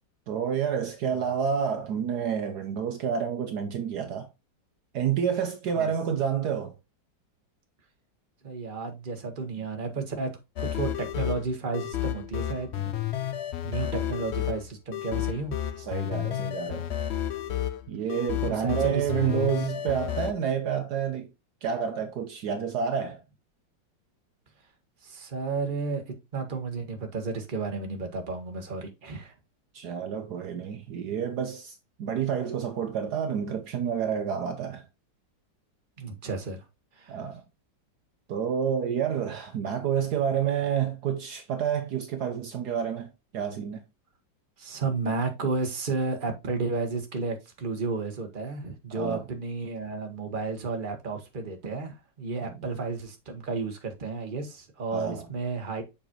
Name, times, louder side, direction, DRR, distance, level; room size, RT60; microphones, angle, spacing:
voice 1, 0.3-4.3 4.9-6.7 15.8-16.9 17.9-21.3 21.6-23.2 29.7-34.8 37.1-37.4 38.3-43.1 43.3-43.8 48.9-49.2 54.9-55.2, right 8 dB, 65° right, 1.3 m, -29 dB
voice 2, 8.4-12.9 13.6-15.6 18.5-19.5 25.0-29.3 36.0-36.6 36.9-37.2 44.6-55.8, right 4 dB, 30° right, 1.5 m, -32 dB
sound 1, 10.6-20.3, left 11 dB, 70° left, 0.6 m, -31 dB
7.2 x 5.0 x 2.9 m
omnidirectional pair, 1.9 m